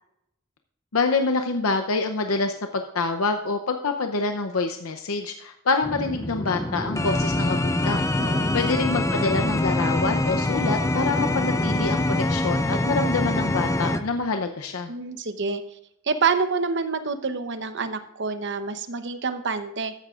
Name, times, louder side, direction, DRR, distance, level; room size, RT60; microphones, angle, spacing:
voice 1, 0.9-8.1 8.5-14.9, left 3 dB, 80° left, 5 dB, 0.7 m, -26 dB
sound 1, 5.8-14.0, left 1 dB, 15° left, 0.5 m, -24 dB
voice 2, 8.2-8.6 14.9-15.6 16.0-19.9, right 4 dB, 55° right, 9 dB, 0.9 m, -27 dB
14.5 x 11.0 x 2.5 m, 0.82 s
head